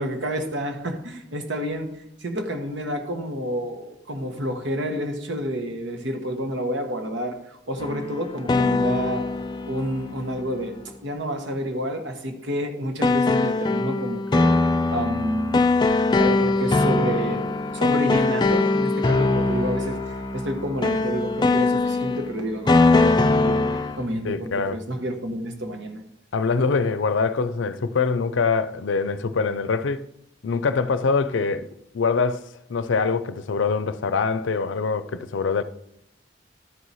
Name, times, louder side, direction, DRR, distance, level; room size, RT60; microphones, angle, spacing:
voice 1, 0.0-1.9 2.2-9.3 9.7-14.5 14.9-15.9 16.1-17.4 17.7-26.0, equal, 80° right, 1.2 m, -29 dB
sound 1, 7.8-10.7 13.0-24.1, left 3 dB, 25° left, 0.4 m, -22 dB
voice 2, 24.2-24.8 26.3-30.1 30.4-31.7 31.9-35.6, left 4 dB, 85° left, 0.5 m, -24 dB
12.5 x 4.7 x 4.1 m
head